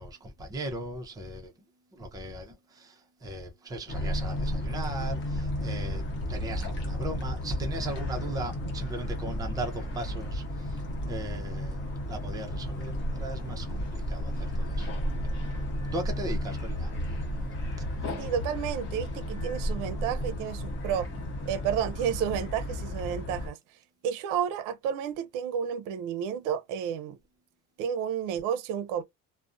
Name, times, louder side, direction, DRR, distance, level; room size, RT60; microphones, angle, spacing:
voice 1, 0.0-1.5 1.9-17.2 17.8-17.9, right 1 dB, 10° right, 0.5 m, -38 dB
sound 1, 3.9-23.5, equal, 40° left, 0.8 m, -33 dB
voice 2, 18.2-21.1 21.5-23.6 24.0-27.2 27.8-29.0, right 8 dB, 75° right, 0.6 m, -31 dB
2.4 x 2.1 x 2.5 m
cardioid pair, 150°, 31 cm